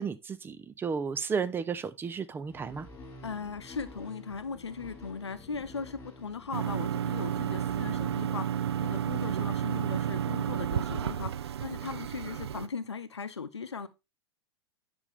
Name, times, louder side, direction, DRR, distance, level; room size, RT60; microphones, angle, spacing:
voice 1, 0.0-2.9, right 6 dB, 15° right, 0.5 m, -33 dB
sound 1, 2.4-9.9, left 2 dB, 15° left, 3.6 m, -50 dB
voice 2, 3.2-13.9, left 5 dB, 80° left, 0.7 m, -38 dB
sound 2, 6.5-12.7, right 10 dB, 70° right, 0.4 m, -31 dB
9.6 x 5.2 x 3.4 m
figure-of-eight pair, 95°, 14 cm